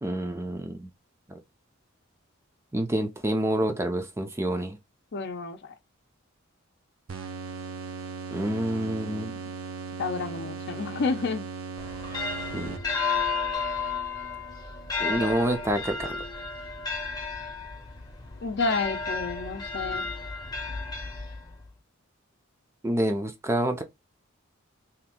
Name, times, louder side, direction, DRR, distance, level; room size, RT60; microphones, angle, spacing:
voice 1, 0.0-0.9 2.7-4.8 8.3-9.4 12.5-12.7 15.0-16.2 22.8-23.8, right 1 dB, 15° right, 0.4 m, -28 dB
voice 2, 5.1-5.7 10.0-11.4 18.4-20.1, left 4 dB, 55° left, 0.6 m, -30 dB
sound 1, 7.1-13.2, right 4 dB, 75° right, 0.6 m, -38 dB
sound 2, 11.8-21.7, left 4 dB, 20° left, 0.7 m, -33 dB
2.9 x 2.5 x 3.6 m
head